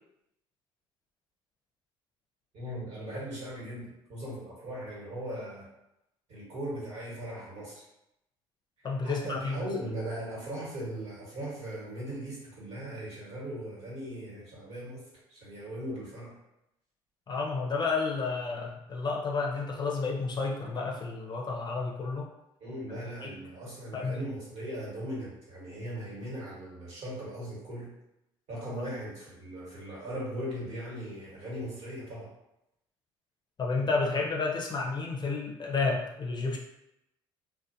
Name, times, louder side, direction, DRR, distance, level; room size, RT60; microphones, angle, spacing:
voice 1, 2.5-5.7 6.3-7.8 8.8-15.0 15.3-16.3 22.6-27.9 28.5-32.3, right 1 dB, 60° right, -6 dB, 1.3 m, -39 dB
voice 2, 8.8-9.6 17.3-22.3 23.2-23.3 23.9-24.2 28.7-28.8 33.6-36.6, left 4 dB, 35° left, -1 dB, 0.6 m, -31 dB
2.4 x 2.2 x 2.7 m, 0.86 s
hypercardioid pair, 65°, 12 cm